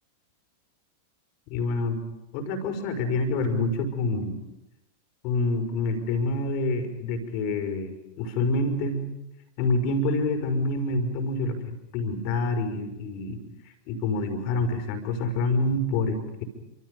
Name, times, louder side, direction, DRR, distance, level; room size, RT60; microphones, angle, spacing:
voice 1, 1.5-2.0 2.3-4.3 5.2-9.0 9.6-11.6 11.9-13.4 13.9-16.4, left 2 dB, 45° left, 7 dB, 5.7 m, -27 dB
29.5 x 27.0 x 5.5 m, 0.92 s
figure-of-eight pair, 90°, 0 cm